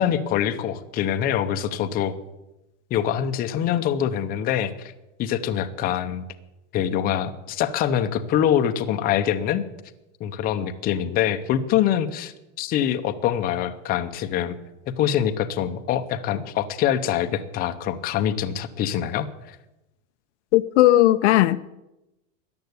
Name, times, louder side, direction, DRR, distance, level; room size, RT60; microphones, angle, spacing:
voice 1, 0.0-2.1 2.9-4.9 5.2-6.2 6.7-9.6 10.2-14.6 14.9-19.6, left 10 dB, 25° left, 0.8 m, -24 dB
voice 2, 20.5-21.6, left 15 dB, 60° left, 0.7 m, -16 dB
14.0 x 10.5 x 8.1 m
supercardioid pair, 160°, 39 cm